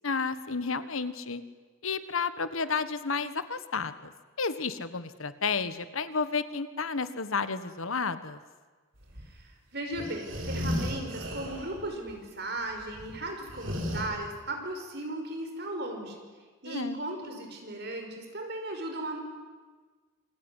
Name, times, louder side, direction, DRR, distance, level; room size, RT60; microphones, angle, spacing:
voice 1, 0.0-1.4 1.8-4.1 4.4-8.4 16.7-17.0, left 4 dB, 75° left, 12 dB, 1.4 m, -31 dB
sound 1, 9.0-9.4 9.9-11.8 12.1-12.2 12.7-14.0, equal, 65° right, 7.1 m, -34 dB
voice 2, 9.2-16.2 16.6-19.2, right 1 dB, 50° right, 3 dB, 5.4 m, -36 dB
27.5 x 22.0 x 10.0 m, 1.4 s
head